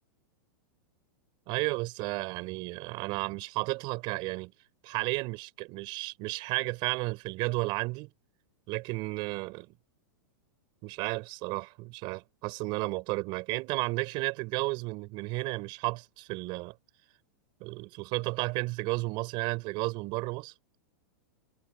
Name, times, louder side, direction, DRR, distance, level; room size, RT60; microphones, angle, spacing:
voice 1, 1.5-4.5 4.8-8.1 8.7-9.7 10.8-16.7 17.6-20.5, right 24 dB, 45° right, 6.0 m, -33 dB
hypercardioid pair, 135°, 11 cm